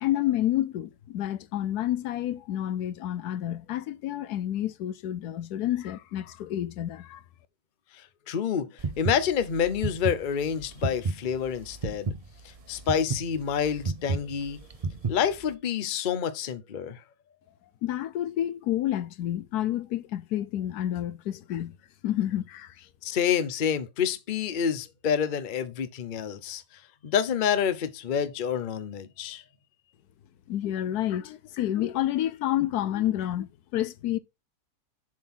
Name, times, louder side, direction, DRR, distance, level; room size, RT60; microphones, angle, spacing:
voice 1, 0.0-7.2 17.8-21.8 22.0-22.9 30.5-34.2, left 12 dB, 80° left, 1.1 m, -29 dB
voice 2, 7.9-8.7 9.0-12.1 12.7-14.6 15.1-17.0 23.0-26.6 27.0-29.4, left 8 dB, 40° left, 0.7 m, -28 dB
sound 1, 8.8-15.5, right 4 dB, 70° right, 0.3 m, -32 dB
7.4 x 3.8 x 6.1 m
omnidirectional pair, 1.7 m